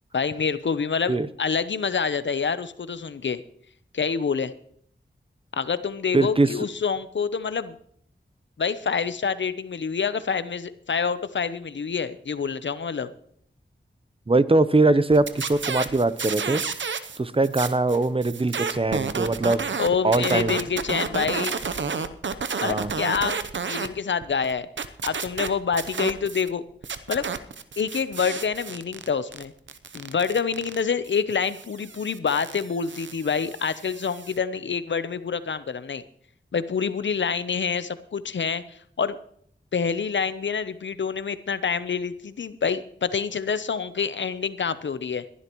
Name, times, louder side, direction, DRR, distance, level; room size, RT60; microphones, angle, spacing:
voice 1, 0.1-3.4 3.9-4.5 5.5-7.8 8.6-13.1 19.8-21.6 22.6-23.4 23.7-24.7 25.0-26.6 27.1-27.3 27.8-29.5 29.9-36.0 36.5-39.2 39.7-45.2, left 6 dB, 70° left, 14 dB, 0.7 m, -27 dB
voice 2, 6.1-6.5 14.3-16.6 17.2-19.6 20.0-20.6 22.6-22.9, right 2 dB, 30° right, 15 dB, 0.7 m, -21 dB
sound 1, 15.1-17.2 17.4-23.9 24.2-26.5 26.8-34.4, right 5 dB, 80° right, 0.8 m, -31 dB
21.0 x 11.5 x 3.0 m, 0.64 s
wide cardioid pair, 55°, 19 cm